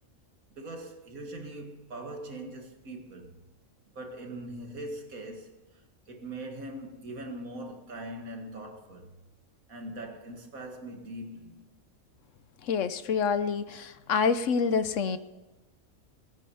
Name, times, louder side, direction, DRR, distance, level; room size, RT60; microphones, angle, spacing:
voice 1, 0.6-3.4 4.0-5.6 6.1-9.1 9.7-11.7, right 1 dB, 85° right, 2.3 m, -41 dB
voice 2, 12.7-15.2, left 5 dB, 65° left, 1.1 m, -27 dB
20.0 x 9.4 x 5.6 m
omnidirectional pair, 1.4 m